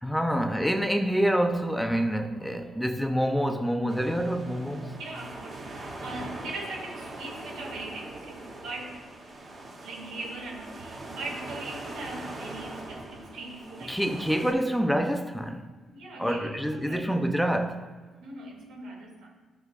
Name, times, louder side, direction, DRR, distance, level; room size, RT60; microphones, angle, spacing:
voice 1, 0.0-4.9 13.8-15.7 16.2-17.9, equal, ahead, 0.6 m, -27 dB
sound 1, 3.9-14.5, right 2 dB, 40° right, 2.6 m, -41 dB
voice 2, 5.0-9.0 9.8-14.0 15.9-17.1 18.2-19.3, right 2 dB, 85° right, 2.1 m, -40 dB
13.0 x 6.3 x 2.4 m
cardioid pair, 90°, 0 cm